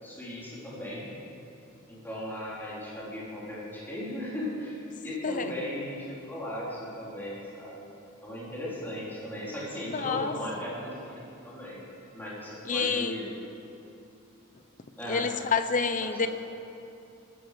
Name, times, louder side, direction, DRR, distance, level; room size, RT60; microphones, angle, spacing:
voice 1, 0.0-1.1 1.9-7.9 8.2-11.8 12.1-13.3 15.0-15.3 16.0-16.3, left 1 dB, 10° left, -8 dB, 3.9 m, -37 dB
voice 2, 9.9-10.3 12.7-13.2 15.1-16.3, left 5 dB, 35° left, 10 dB, 0.8 m, -28 dB
20.5 x 12.5 x 5.2 m, 2.7 s
head